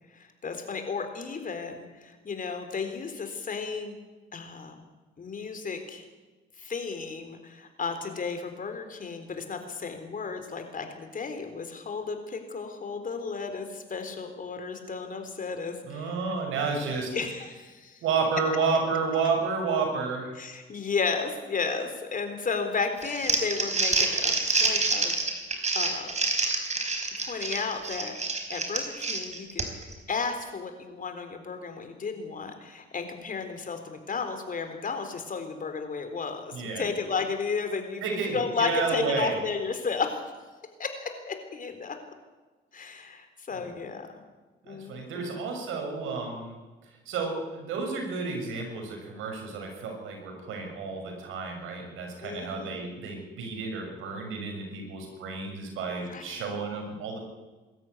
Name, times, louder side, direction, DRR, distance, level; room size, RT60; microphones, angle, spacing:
voice 1, 0.1-4.0 4.3-4.8 5.2-6.0 6.6-16.1 17.1-18.0 20.4-25.1 25.7-26.1 27.2-28.1 28.5-29.6 30.1-40.2 40.8-42.0 42.7-44.1 44.7-45.4 52.2-52.8 56.1-56.6, left 5 dB, 45° left, 7 dB, 4.1 m, -33 dB
voice 2, 15.8-17.1 18.0-20.3 36.5-36.9 38.0-39.4 43.5-43.7 44.7-46.5 47.0-57.2, right 4 dB, 90° right, 2 dB, 6.7 m, -31 dB
Crumpling crinkling, 23.0-29.9, right 3 dB, 35° right, 4.5 m, -27 dB
22.5 x 13.5 x 9.7 m, 1.2 s
cardioid pair, 90°, 20 cm